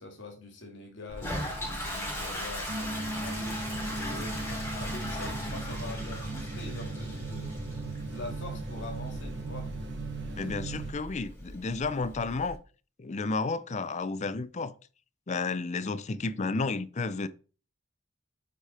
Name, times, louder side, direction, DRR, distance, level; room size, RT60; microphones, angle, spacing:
voice 1, 0.0-3.6 4.0-7.6 8.0-9.7, left 2 dB, 65° left, 2.0 m, -44 dB
Toilet flush, 1.1-12.5, equal, 10° left, 3.8 m, -38 dB
sound 1, 2.7-10.9, right 3 dB, 65° right, 1.7 m, -37 dB
voice 2, 3.6-4.2 10.4-12.6 13.0-14.7 15.3-17.3, left 3 dB, 35° left, 0.5 m, -32 dB
8.4 x 4.9 x 4.3 m
head